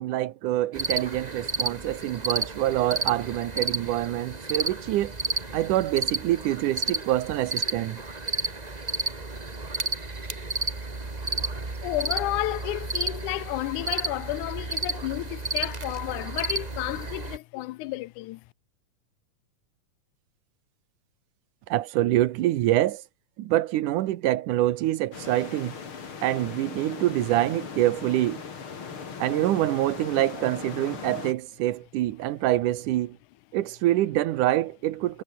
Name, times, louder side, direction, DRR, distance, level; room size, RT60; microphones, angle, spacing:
voice 1, 0.0-5.1 5.5-8.0 21.7-23.0 23.4-25.7 26.2-28.4 29.2-33.2 33.5-35.2, right 14 dB, 85° right, 2.6 m, -25 dB
sound 1, 0.7-17.4, right 3 dB, 15° right, 1.5 m, -32 dB
voice 2, 11.8-18.4, left 18 dB, 85° left, 2.1 m, -31 dB
sound 2, 25.1-31.3, left 6 dB, 45° left, 3.4 m, -39 dB
omnidirectional pair, 3.5 m